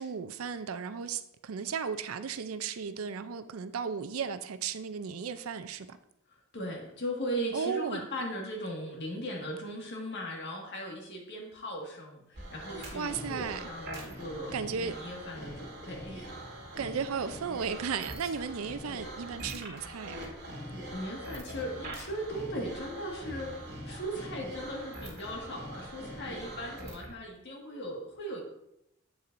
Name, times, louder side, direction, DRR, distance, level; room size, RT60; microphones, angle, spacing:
voice 1, 0.0-6.0 7.5-8.1 12.9-13.7 14.5-15.0 16.8-20.2, right 6 dB, 80° right, 12 dB, 0.5 m, -35 dB
voice 2, 6.3-16.3 20.6-28.4, equal, 55° left, 0 dB, 1.7 m, -38 dB
sound 1, 12.3-27.1, right 1 dB, 50° right, 1.8 m, -43 dB
8.3 x 7.1 x 2.6 m, 0.81 s
head